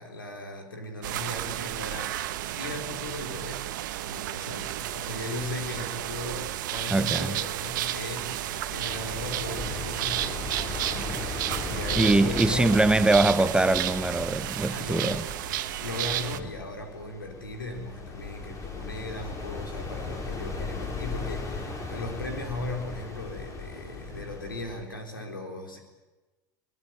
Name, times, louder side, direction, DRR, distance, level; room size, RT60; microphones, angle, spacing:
voice 1, 0.0-3.7 4.0-10.4 10.7-11.1 11.4-13.1 14.7-15.4 15.8-25.8, left 2 dB, 85° left, 4.0 m, -37 dB
sound 1, 1.0-16.4, right 13 dB, 65° right, 1.2 m, -32 dB
sound 2, 5.4-24.8, left 3 dB, 30° left, 5.0 m, -38 dB
voice 2, 6.9-7.4 12.0-15.2, right 2 dB, 10° right, 0.8 m, -23 dB
22.0 x 19.5 x 9.2 m
figure-of-eight pair, 80°, 11 cm